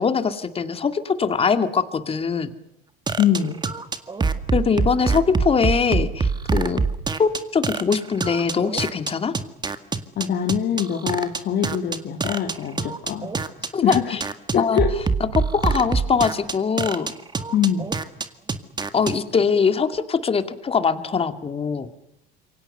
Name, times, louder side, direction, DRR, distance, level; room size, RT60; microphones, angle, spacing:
voice 1, 0.0-2.5 4.5-6.8 7.2-9.3 13.7-14.2 14.6-14.8 15.3-17.1 18.9-21.9, left 5 dB, 25° left, 9 dB, 2.5 m, -22 dB
sound 1, 3.1-19.1, right 4 dB, 20° right, 2.0 m, -24 dB
voice 2, 3.2-3.6 10.1-13.3 13.8-14.0 14.5-14.9 17.5-17.9, left 9 dB, 50° left, 1 dB, 3.5 m, -23 dB
27.5 x 24.5 x 6.9 m, 0.79 s
cardioid pair, 115°, 21 cm